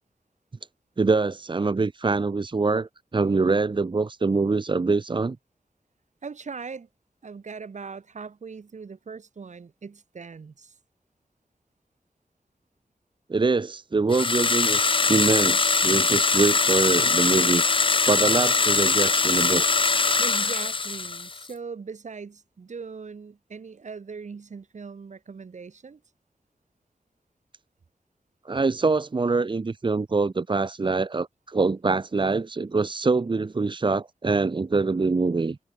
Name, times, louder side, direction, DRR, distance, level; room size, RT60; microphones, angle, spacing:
voice 1, 1.0-5.4 13.3-17.6 18.1-19.6 28.4-35.6, right 3 dB, 35° right, 1.6 m, -24 dB
voice 2, 6.2-6.9 7.2-10.8 20.2-26.0, right 5 dB, 65° right, 7.2 m, -40 dB
sound 1, 14.1-21.4, left 4 dB, 40° left, 1.4 m, -22 dB
wide cardioid pair, 135°, 13 cm